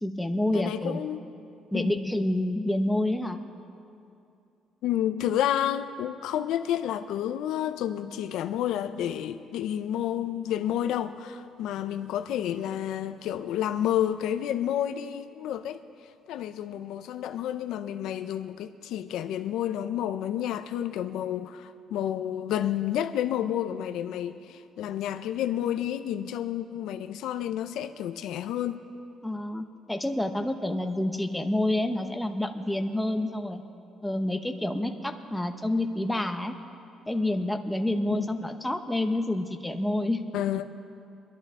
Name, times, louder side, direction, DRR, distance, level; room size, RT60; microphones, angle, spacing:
voice 1, 0.0-1.0 1.7-3.4 29.2-33.6 34.0-36.5 37.1-40.2, left 1 dB, 5° left, 6 dB, 0.8 m, -28 dB
voice 2, 0.5-1.2 1.7-2.0 4.8-15.8 16.3-28.8 38.1-38.4 40.3-40.8, left 11 dB, 80° left, 9 dB, 0.5 m, -30 dB
24.5 x 11.0 x 3.6 m, 2.6 s
cardioid pair, 145°, 0 cm